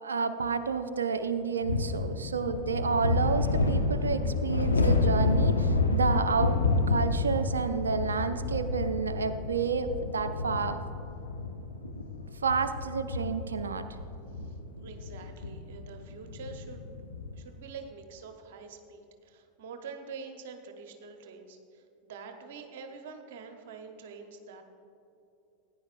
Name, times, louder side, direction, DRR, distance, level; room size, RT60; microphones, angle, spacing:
voice 1, 0.0-6.6 6.9-10.8 12.4-13.9, right 5 dB, 85° right, 9 dB, 0.5 m, -30 dB
sound 1, 1.6-17.4, left 3 dB, 90° left, 0.8 m, -29 dB
voice 2, 14.3-16.9 17.3-24.6, right 5 dB, 65° right, 5 dB, 0.9 m, -46 dB
15.0 x 10.0 x 2.5 m, 2.8 s
hypercardioid pair, 85°, 0 cm